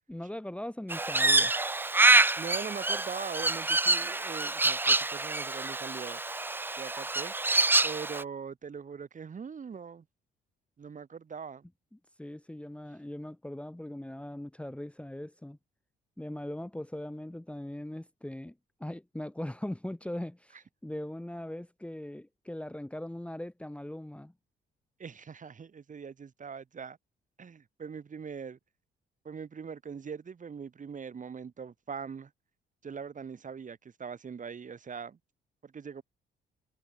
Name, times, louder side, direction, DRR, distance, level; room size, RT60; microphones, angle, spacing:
voice 1, 0.1-1.5 12.2-15.6 16.2-18.5 18.8-24.3, left 1 dB, 5° left, 1.5 m, -40 dB
Crow, 0.9-8.2, right 2 dB, 10° right, 0.4 m, -26 dB
voice 2, 2.4-6.2 6.8-7.3 7.8-10.0 10.8-11.6 25.0-27.0 27.4-28.6 29.2-32.3 32.8-35.2 35.6-36.0, right 6 dB, 40° right, 2.4 m, -41 dB
cardioid pair, 90°, 20 cm